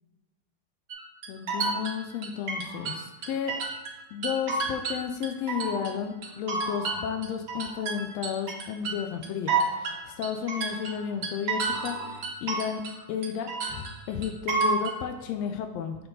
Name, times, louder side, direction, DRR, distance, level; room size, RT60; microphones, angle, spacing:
sound 1, 0.9-4.0 4.2-5.9 6.2-13.0 13.2-15.0, right 4 dB, 75° right, 0.9 m, -30 dB
voice 1, 1.3-3.6 4.1-12.8 13.1-13.5 14.1-16.1, left 8 dB, 85° left, 6 dB, 1.4 m, -32 dB
7.8 x 4.6 x 3.8 m, 1.1 s
omnidirectional pair, 3.5 m